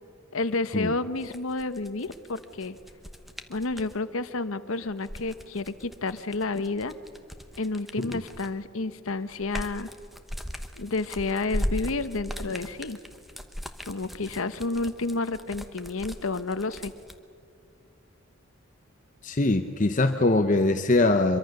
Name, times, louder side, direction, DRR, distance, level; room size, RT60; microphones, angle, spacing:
voice 1, 0.3-2.8 3.5-6.9 7.6-9.9 10.8-13.0 13.9-16.9, left 3 dB, 70° left, 13 dB, 0.9 m, -30 dB
sound 1, 1.2-4.0 4.9-8.7 9.1-17.2, equal, ahead, 0.9 m, -38 dB
voice 2, 19.2-21.4, left 2 dB, 35° left, 7 dB, 0.8 m, -22 dB
24.5 x 23.5 x 6.6 m, 2.4 s
head